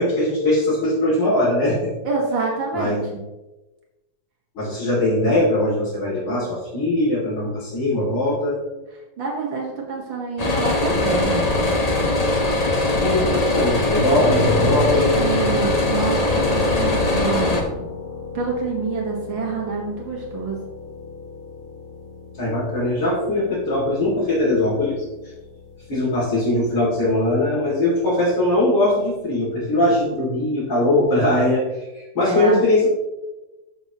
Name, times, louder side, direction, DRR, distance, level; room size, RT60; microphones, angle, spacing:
voice 1, 0.0-1.9 2.7-3.0 4.5-8.6 13.0-15.2 22.3-25.0 25.9-32.9, left 1 dB, 65° left, -9 dB, 3.4 m, -21 dB
voice 2, 2.0-3.2 9.2-11.4 14.1-14.2 15.1-17.8 18.3-20.6 32.2-32.6, right 4 dB, 70° right, -1 dB, 2.2 m, -27 dB
sound 1, 10.4-17.6, left 2 dB, 25° left, 0.8 m, -21 dB
sound 2, 14.1-27.9, left 2 dB, 45° left, 1.8 m, -32 dB
13.0 x 6.0 x 3.0 m, 1.1 s
omnidirectional pair, 2.2 m